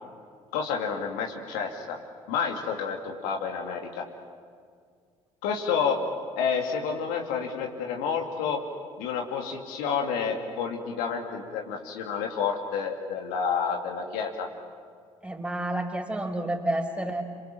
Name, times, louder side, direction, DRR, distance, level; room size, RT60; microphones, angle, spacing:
voice 1, 0.5-2.0 2.3-4.0 5.4-6.0 6.4-8.6 9.0-14.5, left 6 dB, 65° left, 2 dB, 2.6 m, -29 dB
voice 2, 15.2-17.2, right 1 dB, 5° right, 3 dB, 4.9 m, -30 dB
28.0 x 25.5 x 7.6 m, 2.1 s
figure-of-eight pair, 55°, 16 cm